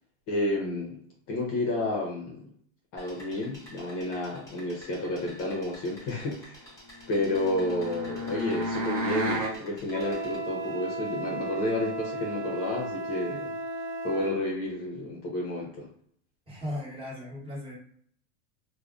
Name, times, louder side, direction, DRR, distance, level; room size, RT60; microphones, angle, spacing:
voice 1, 0.3-1.0 1.3-2.5 2.9-6.7 7.1-13.5 14.0-15.9, left 1 dB, 35° left, -2 dB, 0.6 m, -31 dB
sound 1, 3.0-10.3, left 1 dB, 10° left, 0.9 m, -50 dB
sound 2, 7.0-9.6, equal, 45° right, 0.7 m, -32 dB
Wind instrument woodwind instrument, 9.9-14.4, right 2 dB, 75° right, 0.8 m, -35 dB
voice 2, 16.5-17.8, left 1 dB, 15° right, -6 dB, 1.2 m, -37 dB
2.5 x 2.1 x 2.3 m, 0.63 s
supercardioid pair, 130°, 40 cm